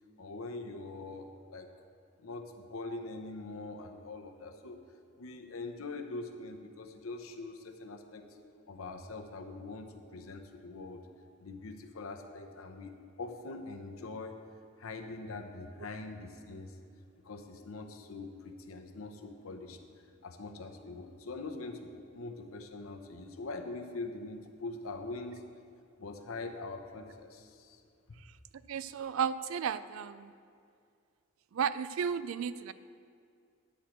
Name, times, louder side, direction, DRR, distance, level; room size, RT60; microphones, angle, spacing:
voice 1, 0.2-1.7 2.2-4.8 5.2-8.3 8.7-11.0 11.4-12.9 13.2-14.4 14.8-16.8 17.2-19.8 20.2-25.4 26.0-27.8, left 3 dB, 85° left, 4 dB, 0.8 m, -43 dB
voice 2, 28.7-30.3 31.5-32.7, right 7 dB, 70° right, 15 dB, 0.3 m, -33 dB
10.0 x 4.5 x 7.8 m, 2.3 s
head